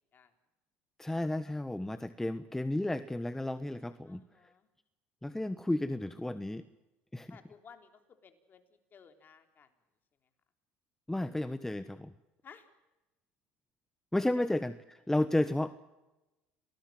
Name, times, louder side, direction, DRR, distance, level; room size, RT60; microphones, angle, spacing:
voice 1, 1.0-4.2 5.2-6.6 7.1-7.4 11.1-12.1 14.1-15.8, left 1 dB, 5° left, 12 dB, 1.2 m, -32 dB
voice 2, 4.1-4.7 7.3-8.6 8.9-9.7 12.4-12.7 14.4-14.5, left 6 dB, 40° left, 7 dB, 3.7 m, -56 dB
28.5 x 19.5 x 7.7 m, 1.0 s
hypercardioid pair, 75°, 5 cm